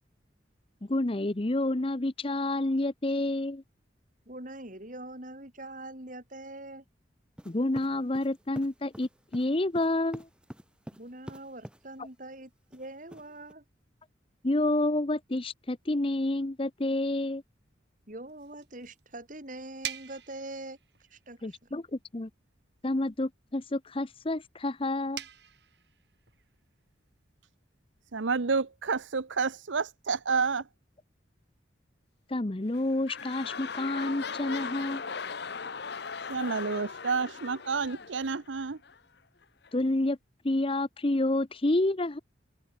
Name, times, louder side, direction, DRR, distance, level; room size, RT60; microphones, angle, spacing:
voice 1, 0.8-3.6 7.5-10.3 14.4-17.4 21.4-22.3 22.8-25.2 32.3-35.0 39.7-40.2 40.4-42.2, left 2 dB, 30° left, 0.8 m, -29 dB
voice 2, 4.3-6.8 11.0-13.6 18.1-20.8 21.1-21.6, right 1 dB, 45° right, 6.0 m, -43 dB
sound 1, 7.4-11.8 12.7-13.5, equal, 5° right, 1.0 m, -46 dB
sound 2, 18.3-29.4, right 10 dB, 60° right, 3.0 m, -48 dB
voice 3, 28.1-30.6 36.3-38.8, right 4 dB, 80° right, 0.8 m, -29 dB
sound 3, 32.6-39.0 39.7-39.8, left 5 dB, 60° left, 0.9 m, -39 dB
head